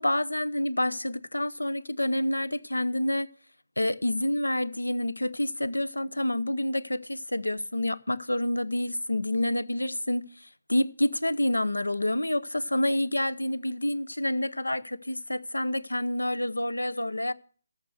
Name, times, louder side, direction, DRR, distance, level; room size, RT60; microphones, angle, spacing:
voice 1, 0.0-3.3 3.8-17.3, left 1 dB, 85° left, 0.6 m, -28 dB
13.5 x 6.5 x 6.3 m
figure-of-eight pair, 145°, 0 cm